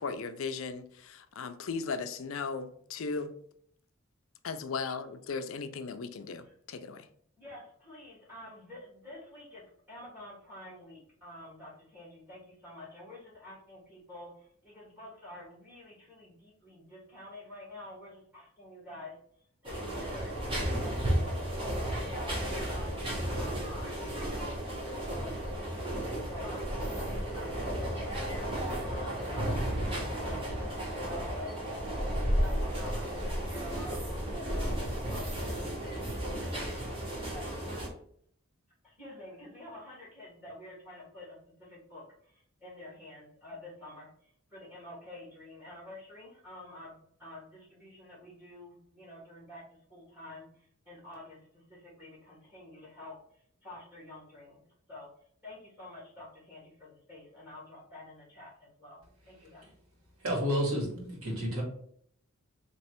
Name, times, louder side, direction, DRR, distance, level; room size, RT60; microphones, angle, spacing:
voice 1, 0.0-3.3 4.4-7.1, left 4 dB, 70° left, 0.4 m, -37 dB
voice 2, 7.4-9.6 9.9-24.5 25.1-28.5 28.8-31.5 32.0-37.7 38.8-54.6 54.9-59.7, left 1 dB, 5° right, 1.5 m, -49 dB
sound 1, 19.6-37.9, right 1 dB, 25° right, 1.1 m, -33 dB
voice 3, 60.2-61.6, equal, 85° right, 1.7 m, -30 dB
3.2 x 2.9 x 4.3 m
head